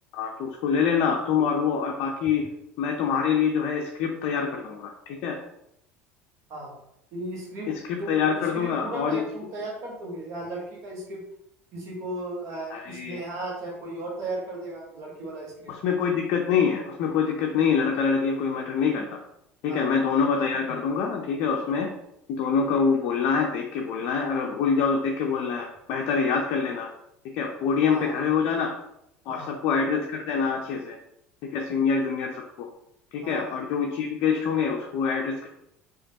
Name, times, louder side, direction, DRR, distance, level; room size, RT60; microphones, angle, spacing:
voice 1, 0.1-2.5 2.8-5.4 7.7-9.2 12.7-13.2 15.7-19.1 19.6-21.9 22.3-26.9 27.3-28.7 29.3-31.0 31.5-32.7 33.1-35.5, left 6 dB, 50° left, 1 dB, 0.5 m, -25 dB
voice 2, 7.1-7.7 8.0-11.2 11.7-15.7 19.7-19.9 27.9-28.2 29.3-29.5 33.2-33.4, right 2 dB, 45° right, -2 dB, 1.3 m, -36 dB
4.9 x 2.5 x 2.8 m, 0.79 s
figure-of-eight pair, 65°, 7 cm